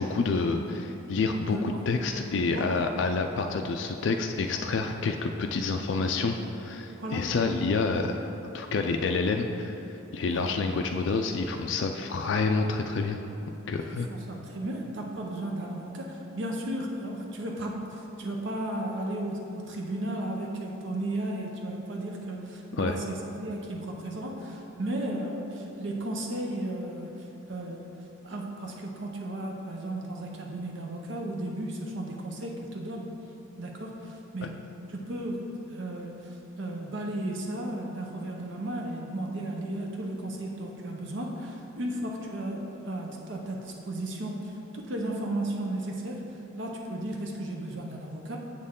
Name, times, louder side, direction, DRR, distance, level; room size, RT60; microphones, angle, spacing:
voice 1, 0.0-8.1 8.5-9.7 10.1-13.2 13.7-14.1 22.7-23.0 34.4-34.5, left 4 dB, 65° left, 4 dB, 0.3 m, -28 dB
voice 2, 1.5-1.8 2.5-2.8 6.9-7.3 10.3-10.5 13.8-27.9 28.2-33.1 33.6-34.6 34.9-48.4, right 1 dB, 65° right, 0 dB, 0.7 m, -34 dB
7.4 x 6.5 x 3.7 m, 3.0 s
head